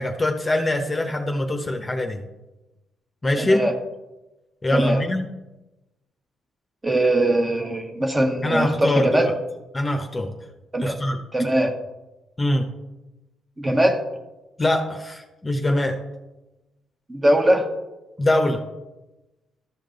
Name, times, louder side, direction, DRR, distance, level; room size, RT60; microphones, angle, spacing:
voice 1, 0.0-2.2 3.2-3.6 4.6-5.2 8.4-9.3 9.7-10.3 10.8-11.2 12.4-12.6 14.6-16.0 18.2-18.6, left 1 dB, 20° left, 4 dB, 1.1 m, -23 dB
voice 2, 3.4-3.7 4.7-5.0 6.8-9.3 10.7-11.0 11.3-11.7 13.6-14.0 17.1-17.7, right 1 dB, 20° right, 3 dB, 1.5 m, -21 dB
13.0 x 5.3 x 4.0 m, 1.0 s
cardioid pair, 90°, 0 cm